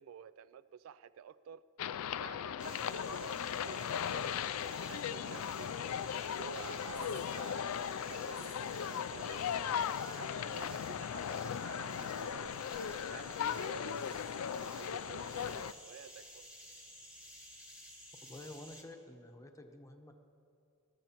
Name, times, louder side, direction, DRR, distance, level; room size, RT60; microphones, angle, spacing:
voice 1, 0.0-1.6 2.2-4.4 4.9-5.7 6.3-9.5 10.1-14.0 14.6-16.4, right 7 dB, 70° right, 0.3 m, -51 dB
sound 1, 1.8-15.7, left 8 dB, 90° left, 0.4 m, -38 dB
sound 2, 2.6-18.8, equal, 5° right, 1.6 m, -53 dB
voice 2, 18.2-20.1, left 1 dB, 15° left, 1.0 m, -50 dB
20.0 x 14.0 x 3.0 m
head